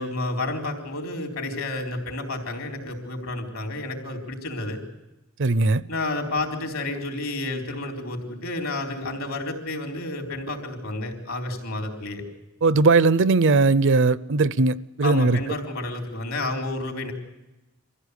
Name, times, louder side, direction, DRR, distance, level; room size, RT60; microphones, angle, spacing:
voice 1, 0.0-4.8 5.9-12.2 15.0-17.1, left 2 dB, 70° left, 4.2 m, -30 dB
voice 2, 5.4-5.8 12.6-15.4, right 3 dB, 60° right, 0.6 m, -19 dB
24.0 x 15.5 x 8.3 m
head